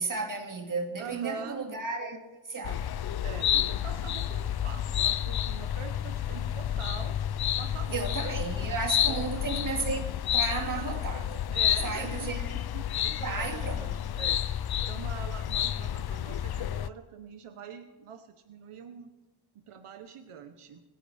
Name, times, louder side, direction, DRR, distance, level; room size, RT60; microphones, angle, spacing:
voice 1, 0.0-2.9 7.9-10.1 10.3-13.9, right 4 dB, 40° right, 2.4 m, -34 dB
voice 2, 1.0-1.7 3.2-7.2 7.6-8.0 9.1-9.5 10.6-11.0 11.5-12.6 13.0-14.4 14.9-19.1 19.5-20.8, right 6 dB, 85° right, 1.1 m, -44 dB
sound 1, 2.6-16.9, left 10 dB, 50° left, 0.5 m, -30 dB
27.0 x 10.0 x 3.5 m
wide cardioid pair, 120°, 49 cm